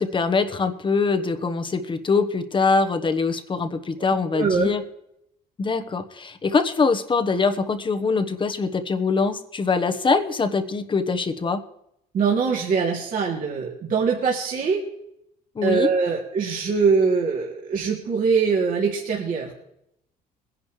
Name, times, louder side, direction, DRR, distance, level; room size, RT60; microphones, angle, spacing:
voice 1, 0.0-4.8 5.6-11.6 15.5-15.9, left 4 dB, 30° left, 8 dB, 1.2 m, -23 dB
voice 2, 4.0-4.7 12.1-14.8 15.6-19.5, right 5 dB, 55° right, -3 dB, 3.0 m, -23 dB
21.5 x 11.0 x 3.3 m, 0.78 s
cardioid pair, 110°, 17 cm